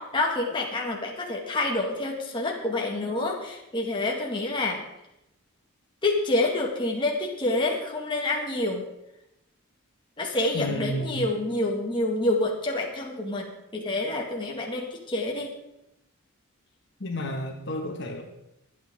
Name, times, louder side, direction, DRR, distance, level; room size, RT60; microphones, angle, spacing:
voice 1, 0.0-4.8 6.0-8.8 10.2-13.5 13.7-15.5, left 2 dB, 20° left, -1 dB, 2.0 m, -27 dB
voice 2, 10.5-11.3 17.0-18.2, equal, 55° left, 2 dB, 1.9 m, -31 dB
24.0 x 8.6 x 3.7 m, 0.85 s
head